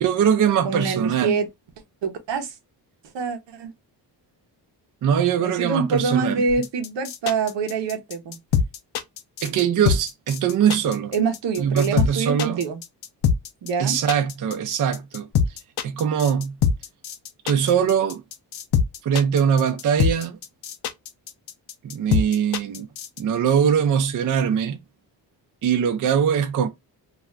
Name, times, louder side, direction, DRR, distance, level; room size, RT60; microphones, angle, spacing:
voice 1, 0.0-1.4 5.0-6.4 9.4-11.1 11.6-12.6 13.8-15.3 15.8-16.5 17.4-18.2 19.0-20.4 21.8-22.9 23.2-24.8 25.6-26.7, right 8 dB, 50° right, 0.5 m, -21 dB
voice 2, 0.6-1.5 2.0-2.5 3.1-3.7 5.4-8.4 11.1-12.8 13.6-14.0, right 5 dB, 90° right, 0.9 m, -25 dB
sound 1, 6.5-23.2, left 7 dB, 65° left, 0.6 m, -24 dB
2.5 x 2.4 x 3.2 m
wide cardioid pair, 160°, 42 cm